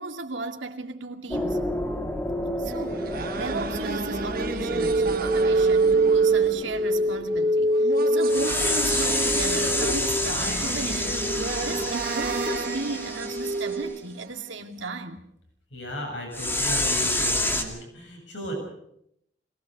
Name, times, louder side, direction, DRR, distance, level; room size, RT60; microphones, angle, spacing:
voice 1, 0.0-1.7 2.6-15.2, right 3 dB, 90° right, 2.2 m, -35 dB
sound 1, 1.3-7.7 8.3-13.7 16.3-17.6, left 1 dB, 10° left, 2.2 m, -29 dB
sound 2, 2.7-14.5, right 4 dB, 55° right, 1.2 m, -34 dB
sound 3, 4.6-13.8, right 2 dB, 10° right, 6.7 m, -25 dB
voice 2, 15.7-18.5, equal, 80° left, 7.5 m, -36 dB
22.0 x 19.0 x 6.6 m
head